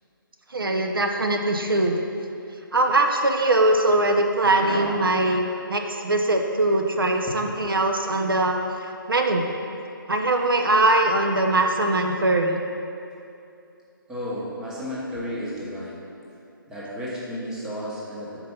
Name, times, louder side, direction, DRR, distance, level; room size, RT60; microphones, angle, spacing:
voice 1, 0.5-2.0 2.7-5.4 5.7-9.4 10.1-12.6, right 2 dB, 75° right, 3 dB, 0.6 m, -21 dB
voice 2, 4.6-5.1 7.3-7.7 14.1-16.0 16.7-18.4, equal, 5° right, -8 dB, 0.8 m, -33 dB
5.1 x 4.5 x 5.4 m, 2.6 s
figure-of-eight pair, 145°, 12 cm